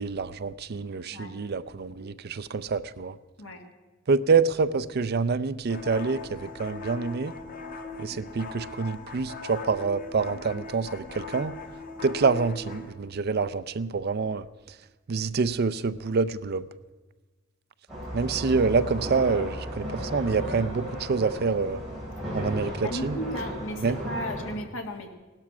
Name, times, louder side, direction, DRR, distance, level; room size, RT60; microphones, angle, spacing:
voice 1, 0.0-3.1 4.1-7.3 8.0-11.5 12.0-14.5 15.1-16.6 18.1-21.8 22.3-23.2 23.8-24.0, right 4 dB, 50° right, 15 dB, 0.5 m, -27 dB
sound 1, 5.7-12.9, left 3 dB, 45° left, 1.6 m, -40 dB
sound 2, 17.9-24.5, equal, ahead, 6.6 m, -35 dB
voice 2, 22.8-25.1, equal, 70° left, 4 dB, 1.9 m, -35 dB
17.0 x 12.0 x 6.1 m, 1.2 s
head